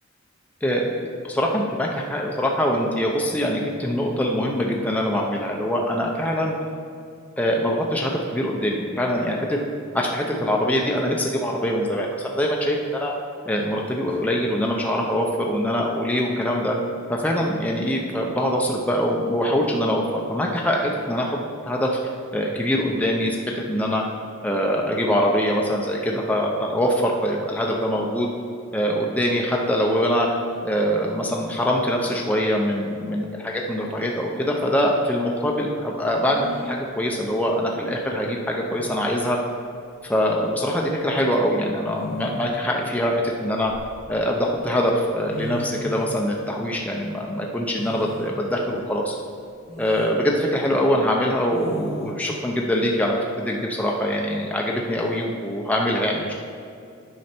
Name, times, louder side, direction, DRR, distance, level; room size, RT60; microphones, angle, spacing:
voice 1, 0.6-0.9 1.2-6.6 7.4-9.6 9.9-13.1 13.5-16.8 17.1-21.3 21.6-21.9 22.3-24.0 24.4-28.3 28.7-30.3 30.6-39.4 40.1-43.7 44.1-49.1 49.8-56.3, equal, 10° left, -1 dB, 0.6 m, -23 dB
sound 1, 36.3-36.8 38.3-38.4 38.8-39.3 40.6-40.8 41.9-42.7 43.3-44.3 45.0-45.1 45.3-46.1 47.7-48.3 48.9-49.0 49.7-50.2 51.5-52.1, right 2 dB, 35° right, 1.3 m, -37 dB
9.4 x 5.4 x 4.4 m, 2.4 s
head